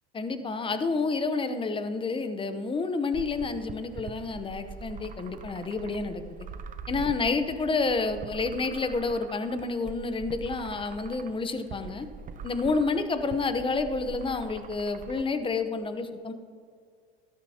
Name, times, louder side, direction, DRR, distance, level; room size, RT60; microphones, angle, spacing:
voice 1, 0.1-6.2 6.9-12.1 12.4-16.3, left 4 dB, 15° left, 9 dB, 0.8 m, -29 dB
sound 1, 3.1-15.2, right 5 dB, 25° right, 0.7 m, -43 dB
13.0 x 12.5 x 2.8 m, 2.1 s
supercardioid pair, 105°, 30 cm